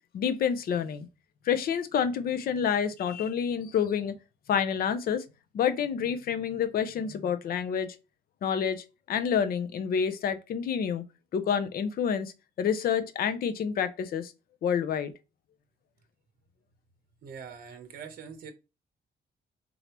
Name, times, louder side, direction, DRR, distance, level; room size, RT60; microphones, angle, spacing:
voice 1, 0.1-1.1 1.5-4.1 4.5-5.2 5.5-7.9 8.4-11.0 11.3-12.3 12.6-14.3 14.6-15.1, left 7 dB, 55° left, 0.5 m, -28 dB
voice 2, 17.2-18.5, right 6 dB, 55° right, 0.8 m, -43 dB
3.8 x 3.3 x 2.9 m
cardioid pair, 155°, 18 cm